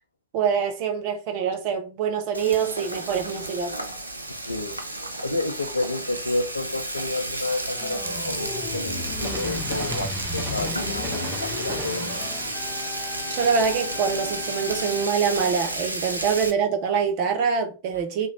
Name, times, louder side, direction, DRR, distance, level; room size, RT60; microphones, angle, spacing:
voice 1, 0.3-3.8 13.3-18.3, right 6 dB, 45° right, 0.6 m, -25 dB
Frying (food), 2.3-16.5, right 1 dB, 85° right, 0.4 m, -32 dB
Train, 3.1-4.8 5.4-16.0, right 1 dB, 15° right, 1.0 m, -42 dB
voice 2, 4.3-4.8 5.2-12.2, left 2 dB, 80° left, 0.4 m, -30 dB
Organ, 7.7-15.0, left 3 dB, 35° left, 0.7 m, -36 dB
2.9 x 2.0 x 2.8 m
figure-of-eight pair, 90°, 0 cm